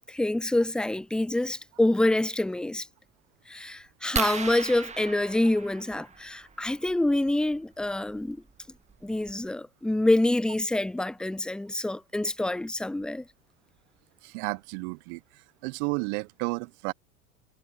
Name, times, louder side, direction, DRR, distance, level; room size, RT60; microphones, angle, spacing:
voice 1, 0.1-2.9 3.5-8.4 9.0-13.2, left 1 dB, ahead, 0.7 m, -26 dB
sound 1, 4.2-6.5 8.1-8.3 8.9-9.0 9.3-9.5, right 5 dB, 15° right, 1.8 m, -35 dB
voice 2, 14.2-15.2 15.6-16.9, right 33 dB, 50° right, 1.4 m, -32 dB
figure-of-eight pair, 85°, 43 cm